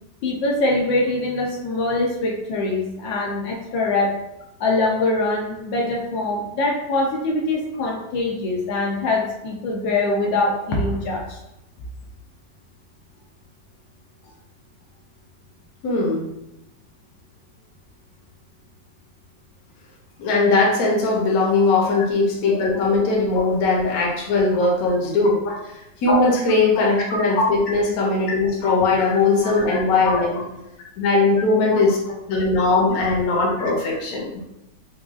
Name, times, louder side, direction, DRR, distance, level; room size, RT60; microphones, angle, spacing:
voice 1, 0.2-4.1 4.6-11.4 21.8-21.9 25.5-25.6 26.8-26.9 29.4-29.5 31.7-31.8 33.6-33.7, left 2 dB, 80° left, -1 dB, 1.3 m, -23 dB
voice 2, 15.8-16.3 20.2-25.4 26.0-30.4 31.0-32.0 32.3-34.3, left 3 dB, 60° left, -2 dB, 1.1 m, -19 dB
4.7 x 2.3 x 2.3 m, 0.89 s
omnidirectional pair, 2.0 m